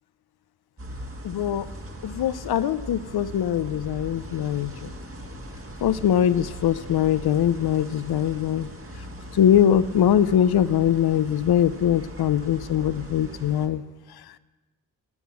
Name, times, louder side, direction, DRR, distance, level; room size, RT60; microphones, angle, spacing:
sound 1, 0.8-13.7, right 1 dB, 35° right, 1.6 m, -40 dB
voice 1, 1.2-1.6 2.0-4.9 5.8-8.7 9.3-13.8, left 9 dB, 80° left, 15 dB, 0.5 m, -22 dB
10.5 x 9.5 x 8.3 m, 1.2 s
wide cardioid pair, 95°, 37 cm